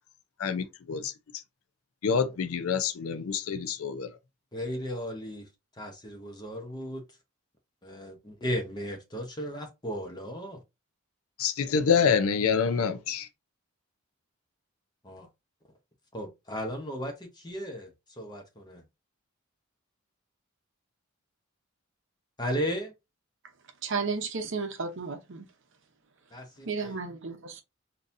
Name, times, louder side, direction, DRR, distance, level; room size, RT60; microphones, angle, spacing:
voice 1, 0.4-1.4 2.0-4.1 11.4-13.3, left 6 dB, 75° left, 0.5 m, -27 dB
voice 2, 4.5-7.0 7.8-10.6 15.0-15.3 16.1-18.8 22.4-22.9 26.3-27.0, equal, 20° left, 0.8 m, -35 dB
voice 3, 23.8-25.5 26.7-27.6, right 4 dB, 55° right, 0.7 m, -33 dB
3.9 x 2.8 x 2.5 m
head